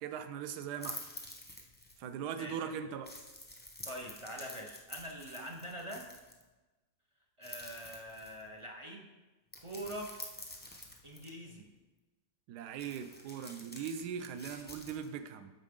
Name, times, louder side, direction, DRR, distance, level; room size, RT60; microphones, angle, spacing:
voice 1, 0.0-1.0 2.0-3.1 12.5-15.5, right 8 dB, 70° right, 9 dB, 1.1 m, -40 dB
sound 1, 0.8-2.0 3.0-6.4 7.4-8.5 9.5-11.3 12.8-15.1, left 1 dB, 10° left, 0.7 m, -48 dB
voice 2, 3.9-6.0 7.4-9.1 9.6-10.1 11.0-11.7, equal, 55° right, 0 dB, 0.3 m, -44 dB
13.5 x 5.2 x 3.7 m, 1.2 s
omnidirectional pair, 2.0 m